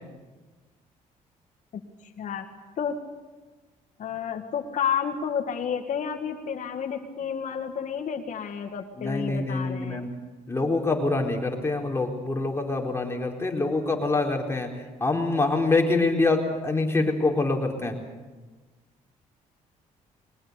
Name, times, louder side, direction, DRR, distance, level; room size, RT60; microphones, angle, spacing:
voice 1, 2.2-2.5 2.8-3.0 4.0-10.1, left 7 dB, 60° left, 3 dB, 1.7 m, -31 dB
voice 2, 9.0-10.1 10.5-14.7 15.0-18.0, left 3 dB, 15° left, 1 dB, 4.2 m, -25 dB
21.5 x 19.5 x 8.2 m, 1.3 s
cardioid pair, 85°, 15 cm